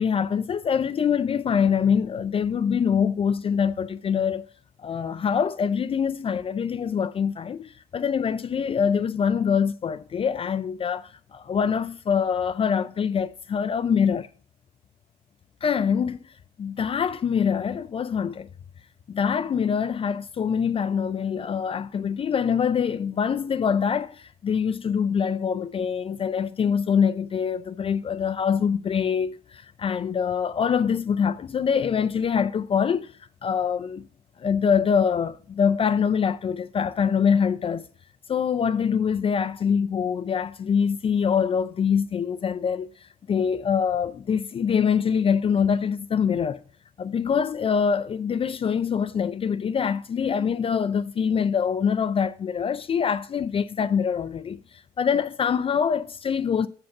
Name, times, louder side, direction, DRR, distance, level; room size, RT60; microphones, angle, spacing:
voice 1, 0.0-4.4 4.8-14.3 15.6-16.3 16.6-18.5 19.1-33.1 33.4-34.1 34.4-37.8 38.3-42.9 43.3-46.6 47.0-54.6 55.0-56.7, left 7 dB, 35° left, 0.4 m, -24 dB
7.1 x 5.2 x 7.1 m
cardioid pair, 110°, 17 cm